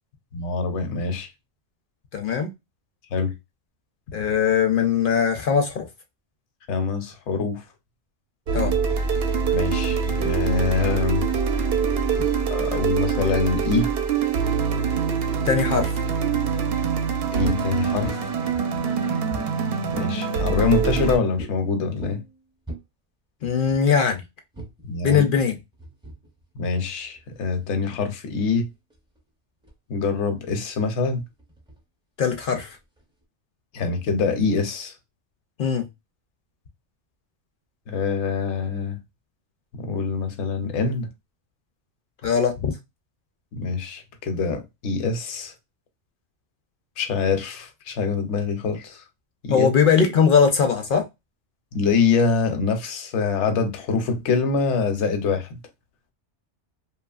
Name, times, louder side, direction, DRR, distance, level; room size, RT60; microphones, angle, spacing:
voice 1, 0.3-1.3 3.1-3.3 6.7-7.6 9.5-11.3 12.5-13.9 17.3-18.3 19.9-22.2 24.9-25.2 26.6-28.7 29.9-31.2 33.7-34.9 37.9-39.0 39.8-41.1 43.5-45.5 47.0-49.0 49.4-49.7 51.7-55.6, left 4 dB, 80° left, 0.9 m, -24 dB
voice 2, 2.1-2.5 4.1-5.9 8.5-8.7 15.4-15.9 23.4-24.2 25.0-25.5 32.2-32.8 35.6-35.8 42.2-42.7 49.5-51.0, left 6 dB, 60° left, 0.6 m, -20 dB
sound 1, 8.5-21.2, right 6 dB, 65° right, 0.8 m, -24 dB
sound 2, 15.8-16.2 17.4-17.7 18.1-20.2 21.3-21.5 21.9-22.8 23.7-23.9 24.5-27.9 28.6-29.2 29.6-29.7 30.0-31.8 32.4-33.2, right 2 dB, 5° right, 0.4 m, -40 dB
2.8 x 2.4 x 2.3 m
omnidirectional pair, 1.2 m